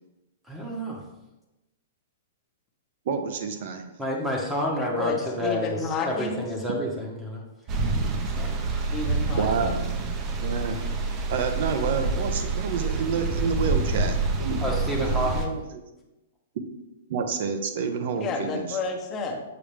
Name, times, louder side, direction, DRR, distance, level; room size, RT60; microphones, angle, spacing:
voice 1, 0.5-1.0 4.0-7.4 8.4-8.8 14.6-15.6, equal, 5° right, -2 dB, 1.1 m, -29 dB
voice 2, 3.1-3.9 9.4-10.8 11.3-14.6 15.0-15.8 17.1-18.8, right 5 dB, 60° right, 7 dB, 0.9 m, -29 dB
voice 3, 5.0-6.5 8.9-9.8 18.1-19.4, left 4 dB, 30° left, 1 dB, 1.1 m, -31 dB
sound 1, 7.7-15.5, right 3 dB, 30° right, 0.9 m, -27 dB
7.0 x 4.9 x 3.4 m, 1.0 s
hypercardioid pair, 130°, 0 cm